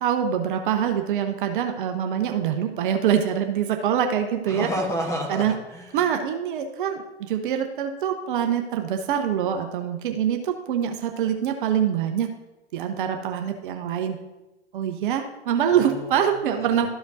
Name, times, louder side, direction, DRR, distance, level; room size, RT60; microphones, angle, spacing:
voice 1, 0.0-4.7 5.3-5.5 5.9-12.3 12.7-14.2 14.7-16.9, right 9 dB, 45° right, 5 dB, 0.8 m, -24 dB
voice 2, 4.5-6.0 15.7-16.9, equal, 10° left, 1 dB, 1.3 m, -31 dB
13.0 x 5.0 x 2.7 m, 0.99 s
hypercardioid pair, 120°, 35 cm